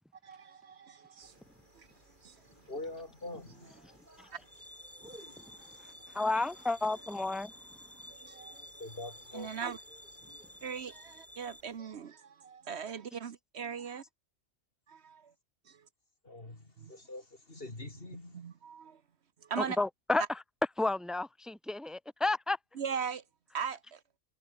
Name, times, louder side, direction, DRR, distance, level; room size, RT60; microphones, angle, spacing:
voice 1, 0.2-1.4 1.7-1.9 2.2-2.4 4.3-4.4 8.1-8.7 9.3-9.8 10.6-14.0 14.9-15.3 15.6-15.9 16.8-16.9 18.3-19.0 19.4-19.8 20.2-20.3 22.7-23.2 23.5-24.0, right 7 dB, 65° right, 1.2 m, -39 dB
sound 1, 1.2-11.8, right 1 dB, 40° right, 6.8 m, -60 dB
voice 2, 2.7-3.7 8.8-9.5 16.2-18.4, left 2 dB, 50° left, 4.1 m, -44 dB
sound 2, 4.5-11.6, left 1 dB, 15° left, 3.2 m, -52 dB
voice 3, 6.1-7.5 19.6-20.2 20.8-22.6, left 2 dB, ahead, 1.8 m, -31 dB
omnidirectional pair, 1.2 m